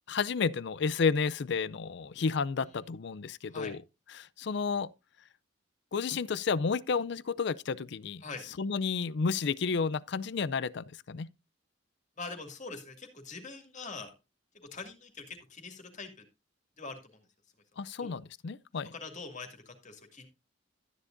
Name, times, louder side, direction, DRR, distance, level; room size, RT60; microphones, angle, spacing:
voice 1, 0.1-3.8 4.2-4.9 5.9-8.2 8.6-11.3 17.8-18.9, left 5 dB, 60° left, 0.5 m, -31 dB
voice 2, 12.2-14.1 14.5-16.2 16.8-17.2 18.0-18.1 18.9-20.3, left 3 dB, 40° left, 2.3 m, -43 dB
13.0 x 9.8 x 2.6 m
head